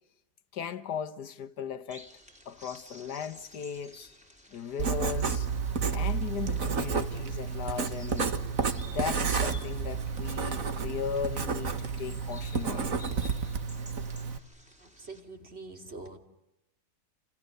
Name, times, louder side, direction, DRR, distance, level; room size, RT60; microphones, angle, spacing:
voice 1, 0.5-2.1 2.5-4.1 4.5-5.5 5.9-8.3 8.8-12.9, left 7 dB, 70° left, 1.8 m, -37 dB
sound 1, 1.9-15.2, equal, 5° right, 3.2 m, -53 dB
Writing, 4.8-14.4, right 5 dB, 55° right, 1.9 m, -31 dB
voice 2, 14.8-16.2, right 3 dB, 35° right, 2.9 m, -44 dB
30.0 x 27.5 x 6.7 m
omnidirectional pair, 1.8 m